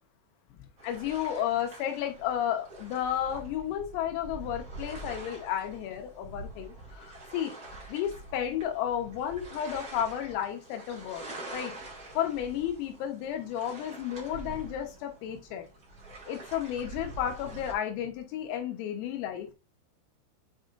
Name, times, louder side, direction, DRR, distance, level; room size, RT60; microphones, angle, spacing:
voice 1, 0.8-7.6 7.9-11.2 11.5-11.7 12.2-15.6 16.3-19.5, left 10 dB, 90° left, 5 dB, 3.9 m, -32 dB
sound 1, 0.8-17.7, right 2 dB, 35° right, 1.5 m, -45 dB
8.8 x 4.9 x 2.6 m, 0.30 s
omnidirectional pair, 5.8 m